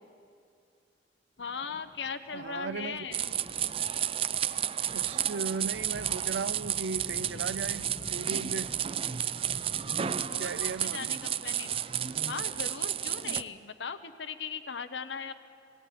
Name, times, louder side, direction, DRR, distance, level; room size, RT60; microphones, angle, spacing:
voice 1, 1.4-3.3 10.3-11.7 12.3-15.3, left 6 dB, 90° left, 10 dB, 0.9 m, -39 dB
sound 1, 1.4-10.8, left 1 dB, 35° left, 0.7 m, -50 dB
voice 2, 2.3-3.1 4.9-8.8 10.4-11.1, right 4 dB, 90° right, 16 dB, 0.6 m, -37 dB
sound 2, 3.1-13.4, right 10 dB, 30° right, 0.4 m, -32 dB
18.5 x 17.0 x 9.3 m, 2.4 s
head